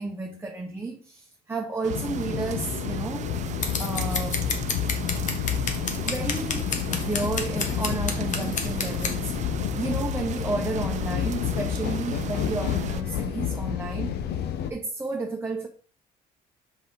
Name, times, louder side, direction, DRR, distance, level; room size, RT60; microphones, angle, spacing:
voice 1, 0.0-3.3 3.8-4.5 6.0-14.2 14.7-15.7, right 3 dB, 15° right, 1.0 m, -32 dB
sound 1, 1.8-13.0, right 10 dB, 45° right, 0.4 m, -38 dB
sound 2, 1.9-14.7, left 9 dB, 75° left, 0.8 m, -30 dB
Scissors, 3.6-9.1, left 5 dB, 50° left, 1.3 m, -30 dB
5.6 x 5.1 x 4.0 m
cardioid pair, 110°, 17 cm